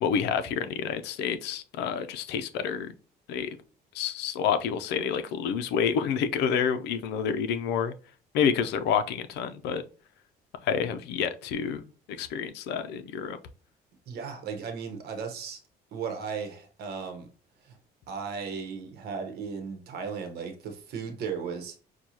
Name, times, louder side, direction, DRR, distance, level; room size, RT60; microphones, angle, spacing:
voice 1, 0.0-2.9 3.3-3.6 3.9-7.9 8.3-9.8 10.6-11.8 12.2-13.4, left 7 dB, 85° left, 0.5 m, -28 dB
voice 2, 14.1-15.6 15.9-17.3 17.6-17.8 18.1-21.7, right 6 dB, 70° right, 0.9 m, -36 dB
6.1 x 2.3 x 2.8 m
cardioid pair, 110°, 17 cm